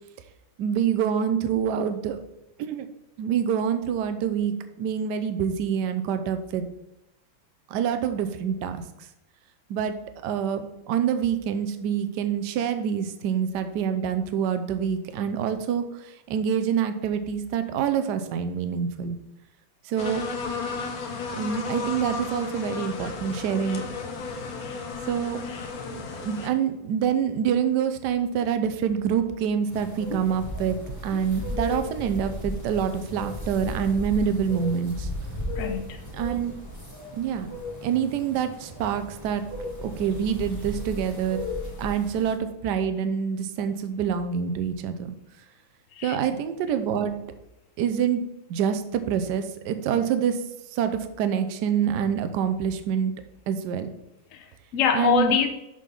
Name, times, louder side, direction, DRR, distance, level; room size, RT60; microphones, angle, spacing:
voice 1, 0.6-2.2 2.6-2.9 3.2-6.6 7.7-8.8 9.7-9.9 10.2-19.2 19.9-20.2 21.4-23.9 25.1-25.4 25.9-30.8 31.0-35.1 36.2-36.5 37.1-37.5 37.8-39.4 39.8-41.4 41.8-45.1 46.0-47.2 47.8-48.2 48.5-50.4 50.7-53.1 53.5-53.9 54.9-55.3, right 8 dB, 70° right, 9 dB, 1.1 m, -26 dB
sound 1, 20.0-26.5, left 5 dB, 60° left, 1.1 m, -33 dB
sound 2, 29.7-42.4, left 1 dB, 10° left, 1.2 m, -35 dB
voice 2, 35.5-36.0 45.9-46.3 54.3-55.5, left 7 dB, 85° left, 5 dB, 0.7 m, -25 dB
6.5 x 3.9 x 5.2 m, 0.89 s
omnidirectional pair, 2.1 m